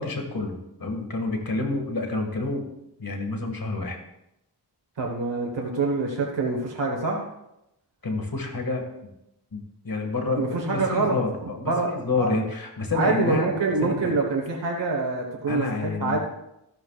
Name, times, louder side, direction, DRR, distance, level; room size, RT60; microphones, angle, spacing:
voice 1, 0.0-2.7 3.0-4.0 8.0-8.9 9.5-13.5 13.8-13.9 15.5-16.2, left 3 dB, 55° left, 3 dB, 2.1 m, -28 dB
voice 2, 5.0-7.2 10.3-11.2 11.4-11.9 12.2-12.3 12.9-16.2, right 3 dB, 90° right, 0 dB, 1.5 m, -25 dB
13.5 x 12.0 x 2.5 m, 0.84 s
wide cardioid pair, 75°, 42 cm